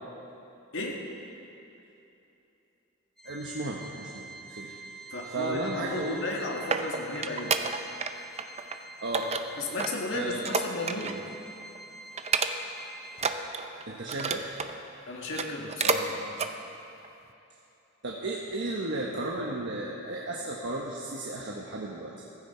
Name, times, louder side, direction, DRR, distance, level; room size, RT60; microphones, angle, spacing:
Organ, 3.2-13.8, right 3 dB, ahead, 1.1 m, -47 dB
voice 1, 3.2-4.7 5.2-6.2 9.0-9.3 10.1-10.4 13.9-14.4 18.0-22.1, right 2 dB, 60° right, -2 dB, 1.3 m, -34 dB
voice 2, 5.1-7.6 9.6-11.2 15.1-16.3, left 2 dB, 65° left, -1 dB, 2.1 m, -34 dB
sound 1, 6.2-8.1 8.4-8.8 9.1-11.3 11.6-11.8 12.2-12.8 13.1-14.7 15.2-16.1 16.3-16.5 17.0-17.1, right 5 dB, 30° right, 0.6 m, -30 dB
15.5 x 14.5 x 4.4 m, 2.9 s
head